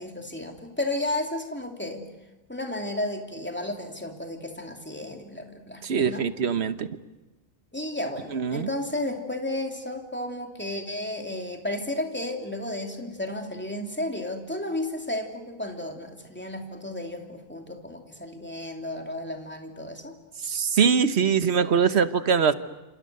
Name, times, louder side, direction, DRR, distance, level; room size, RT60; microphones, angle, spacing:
voice 1, 0.0-2.1 2.5-6.2 7.7-20.1, left 1 dB, 10° left, 3 dB, 2.9 m, -33 dB
voice 2, 5.8-6.9 8.3-8.7 20.4-22.5, right 6 dB, 85° right, 12 dB, 1.3 m, -22 dB
28.0 x 27.5 x 6.8 m, 1.1 s
omnidirectional pair, 1.1 m